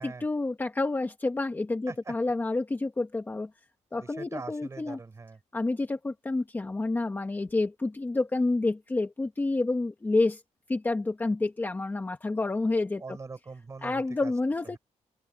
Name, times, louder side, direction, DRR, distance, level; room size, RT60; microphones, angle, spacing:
voice 1, 0.0-3.5 3.9-5.0 5.5-10.4 10.7-13.2 13.8-14.8, left 2 dB, 15° left, 1.5 m, -29 dB
voice 2, 4.0-5.4 13.0-14.3, right 4 dB, 25° right, 7.0 m, -42 dB
open air
wide cardioid pair, 170°, 12 cm